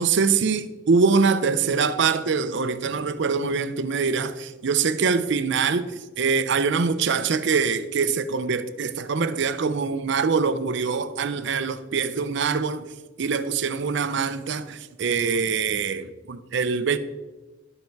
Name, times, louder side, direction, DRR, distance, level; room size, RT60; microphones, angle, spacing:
voice 1, 0.0-12.9 13.2-17.0, right 5 dB, 65° right, 0.5 m, -24 dB
11.5 x 5.4 x 4.6 m
head